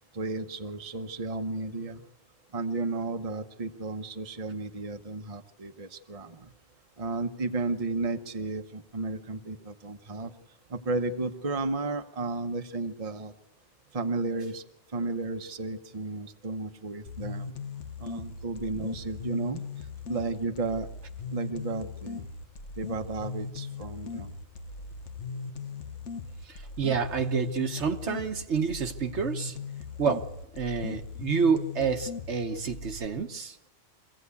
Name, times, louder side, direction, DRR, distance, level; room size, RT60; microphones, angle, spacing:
voice 1, 0.1-2.0 2.5-6.5 7.0-10.3 10.7-13.3 13.9-14.6 14.9-17.5 18.0-19.6 20.1-20.9 21.3-22.3 22.8-24.3, right 3 dB, 30° right, 6 dB, 1.0 m, -33 dB
sound 1, 17.1-33.1, left 4 dB, 80° left, 1.4 m, -39 dB
voice 2, 26.8-29.6 30.0-33.6, right 5 dB, 70° right, 6 dB, 1.4 m, -28 dB
24.5 x 16.0 x 8.3 m, 0.88 s
omnidirectional pair, 1.2 m